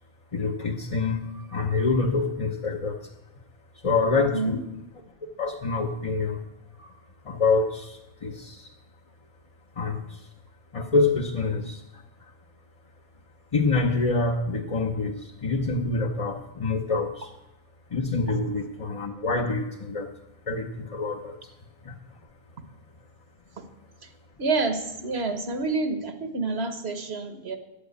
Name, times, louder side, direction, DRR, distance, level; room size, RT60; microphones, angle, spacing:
voice 1, 0.3-3.0 3.8-4.6 5.4-6.4 6.8-6.9 7.2-8.7 9.8-10.3 10.7-11.8 13.5-17.3 17.9-20.1 20.5-21.4 21.8-22.0, left 3 dB, 35° left, 1 dB, 0.9 m, -26 dB
voice 2, 4.1-4.6 18.3-18.4 23.6-23.7 24.4-27.6, right 3 dB, 70° right, 7 dB, 1.6 m, -28 dB
12.0 x 9.1 x 8.1 m, 0.94 s
omnidirectional pair, 1.1 m